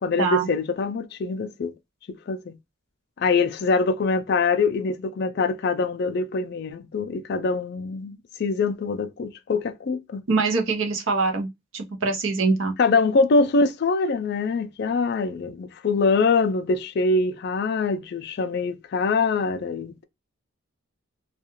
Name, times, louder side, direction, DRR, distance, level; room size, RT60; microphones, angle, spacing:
voice 1, 0.0-1.7 2.1-2.6 3.2-10.2 12.8-20.1, left 4 dB, 50° left, 0.3 m, -24 dB
voice 2, 10.3-12.7, right 4 dB, 70° right, 0.7 m, -24 dB
2.3 x 2.3 x 2.9 m
head